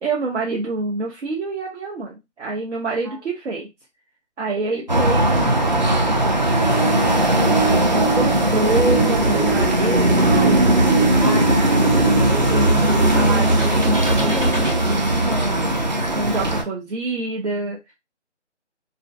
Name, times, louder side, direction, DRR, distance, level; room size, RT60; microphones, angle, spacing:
voice 1, 0.0-3.7 4.4-5.9 7.4-10.7 12.5-15.5 16.1-17.9, right 3 dB, 70° right, 0.7 m, -27 dB
sound 1, 4.9-16.6, right 1 dB, 40° right, 0.4 m, -19 dB
sound 2, 6.1-13.8 14.5-14.6 15.6-15.7, right 4 dB, 20° right, 1.0 m, -27 dB
sound 3, 8.5-14.7, right 2 dB, 90° right, 1.4 m, -23 dB
voice 2, 11.2-12.5, right 1 dB, 30° left, 0.4 m, -35 dB
2.5 x 2.2 x 2.3 m
figure-of-eight pair, 160°, 36 cm